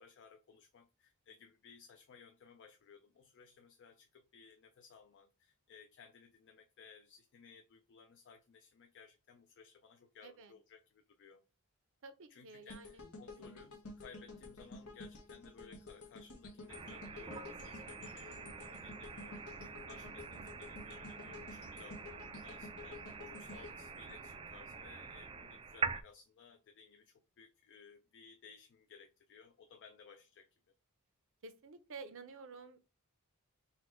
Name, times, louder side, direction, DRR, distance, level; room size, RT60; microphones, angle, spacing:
voice 1, 0.0-11.4 12.3-30.5, left 6 dB, 55° left, 0.4 m, -59 dB
voice 2, 10.2-10.5 12.0-13.0 13.4-13.6 21.1-21.9 31.4-32.8, right 4 dB, 60° right, 0.6 m, -52 dB
sound 1, 12.7-24.9 25.3-25.4, left 2 dB, 85° left, 0.9 m, -51 dB
sound 2, 16.7-26.0, right 5 dB, 25° right, 0.3 m, -45 dB
4.1 x 2.2 x 4.3 m
head